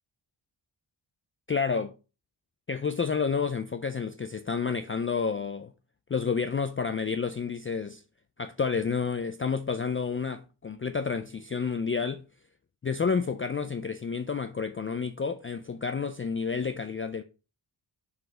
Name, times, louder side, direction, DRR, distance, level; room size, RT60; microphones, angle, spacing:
voice 1, 1.5-1.9 2.7-5.7 6.1-8.0 8.4-12.2 12.8-17.2, left 5 dB, 30° left, 0.4 m, -30 dB
6.3 x 4.9 x 4.9 m
wide cardioid pair, 170°, 46 cm